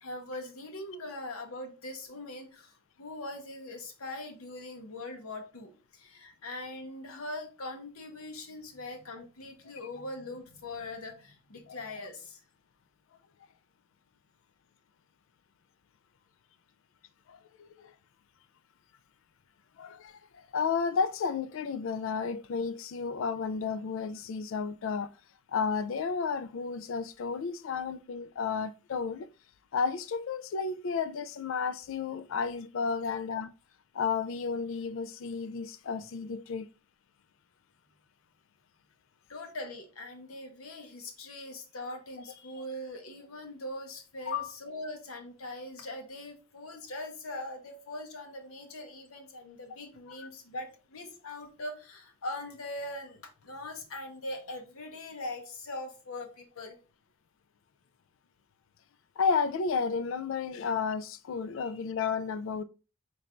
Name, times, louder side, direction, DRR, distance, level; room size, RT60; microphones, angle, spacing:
voice 1, 0.0-12.4 39.3-56.8 61.6-61.7, left 1 dB, 85° left, 0.8 m, -41 dB
voice 2, 20.5-25.1 25.5-29.3 29.7-33.5 34.0-36.6 44.3-44.5 59.2-62.6, left 5 dB, 70° left, 0.3 m, -32 dB
4.2 x 3.2 x 2.5 m
head